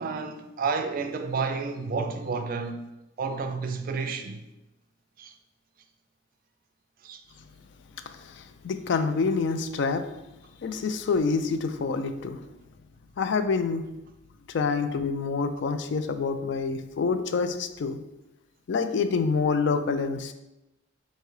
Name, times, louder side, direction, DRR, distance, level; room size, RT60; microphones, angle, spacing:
voice 1, 0.0-2.9 3.2-4.4 5.2-5.3 7.0-7.2, right 4 dB, 45° right, 0.3 m, -30 dB
voice 2, 8.1-10.0 10.6-12.4 13.2-13.8 14.5-18.0 18.7-20.3, left 4 dB, 60° left, 0.3 m, -27 dB
4.7 x 2.7 x 3.1 m
head